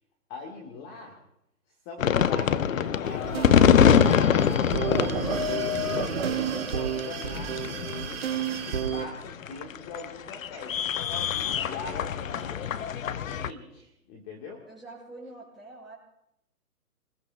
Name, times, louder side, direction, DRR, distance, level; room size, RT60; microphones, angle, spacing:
voice 1, 0.3-1.1 1.9-4.5 5.0-8.2 8.7-10.8 11.1-12.7 13.4-14.6, left 3 dB, 20° left, 0 dB, 1.8 m, -42 dB
sound 1, 2.0-13.5, left 8 dB, 60° left, 0.7 m, -24 dB
sound 2, 3.0-9.0, right 8 dB, 40° right, 1.4 m, -31 dB
voice 2, 14.7-15.9, right 2 dB, ahead, -8 dB, 6.3 m, -45 dB
27.5 x 21.0 x 2.4 m, 0.79 s
hypercardioid pair, 145°, 46 cm